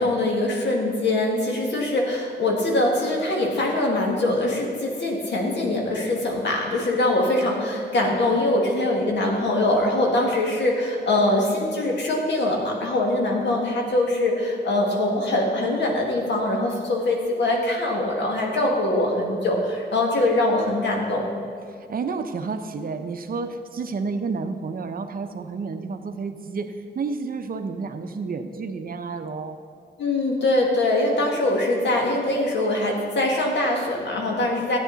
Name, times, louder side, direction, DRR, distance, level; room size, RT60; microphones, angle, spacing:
voice 1, 0.0-21.2 30.0-34.8, left 1 dB, 75° left, 0 dB, 2.0 m, -23 dB
voice 2, 21.7-29.6, right 4 dB, 55° right, 7 dB, 0.7 m, -30 dB
13.5 x 9.2 x 4.0 m, 2.4 s
wide cardioid pair, 135°, 18 cm